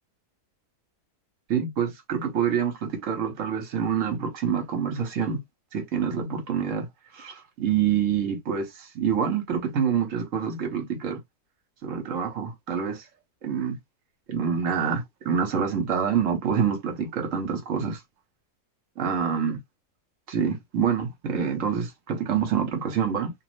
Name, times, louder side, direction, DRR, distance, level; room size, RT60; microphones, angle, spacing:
voice 1, 1.5-5.4 5.7-6.9 7.1-11.2 11.8-13.1 13.4-13.8 14.3-18.0 19.0-19.6 20.3-23.3, right 7 dB, 60° right, 1.1 m, -26 dB
2.7 x 2.0 x 2.9 m
omnidirectional pair, 1.6 m